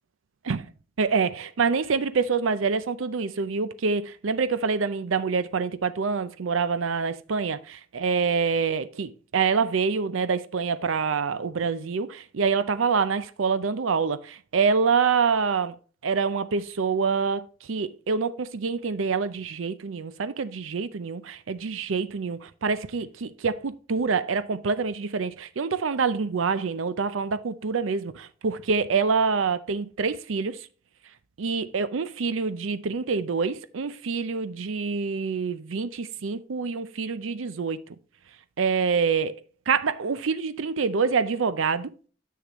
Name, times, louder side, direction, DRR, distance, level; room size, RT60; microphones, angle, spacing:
voice 1, 1.0-15.8 16.0-30.6 31.4-37.8 38.6-39.4 39.7-41.9, right 5 dB, 80° right, 0.5 m, -26 dB
10.0 x 6.6 x 3.0 m
head